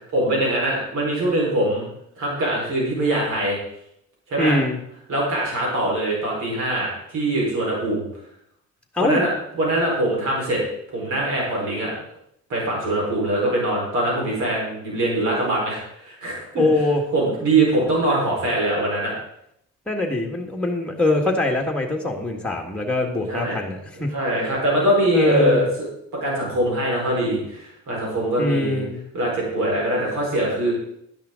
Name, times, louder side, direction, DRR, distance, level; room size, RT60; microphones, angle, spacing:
voice 1, 0.1-1.9 2.2-3.6 4.3-4.6 5.1-8.0 9.0-9.3 9.6-10.6 10.9-11.9 12.5-16.6 17.1-19.1 23.3-23.6 23.9-25.7 26.2-28.8 29.1-30.7, right 1 dB, 80° right, -3 dB, 4.7 m, -22 dB
voice 2, 4.4-4.8 8.9-9.2 16.6-17.0 19.9-24.1 25.1-25.7 28.4-29.0, left 2 dB, 5° left, 1 dB, 1.8 m, -22 dB
12.0 x 10.5 x 3.8 m, 0.75 s
cardioid pair, 90°, 30 cm